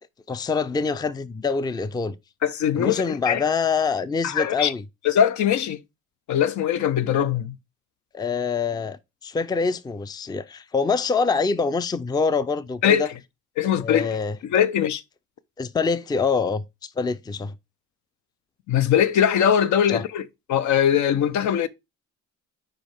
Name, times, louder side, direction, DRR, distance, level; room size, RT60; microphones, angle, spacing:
voice 1, 0.3-2.2 2.7-4.8 8.1-13.1 13.6-14.4 15.6-17.5 19.9-20.0, left 4 dB, 15° left, 0.4 m, -25 dB
voice 2, 2.4-3.4 4.2-4.7 5.0-5.8 6.3-7.5 12.8-13.1 13.6-14.2 14.4-15.0 18.7-20.2 20.5-21.7, left 9 dB, 70° left, 0.7 m, -21 dB
5.1 x 4.7 x 4.4 m
cardioid pair, 90°, 30 cm